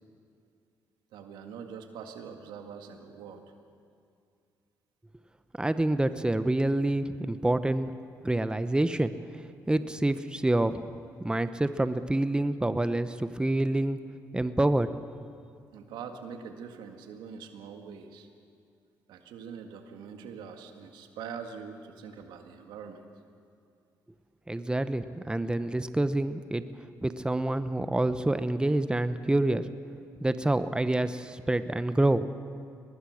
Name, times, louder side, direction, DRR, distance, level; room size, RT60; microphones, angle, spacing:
voice 1, 1.1-3.5 15.7-18.3 19.1-23.1, right 6 dB, 80° right, 5 dB, 1.9 m, -43 dB
voice 2, 5.6-7.9 8.2-10.9 11.2-14.0 14.3-14.9 24.5-26.6 27.0-29.7 30.2-32.3, right 1 dB, 10° right, 12 dB, 1.0 m, -27 dB
23.0 x 19.5 x 6.5 m, 2.4 s
supercardioid pair, 60°, 8 cm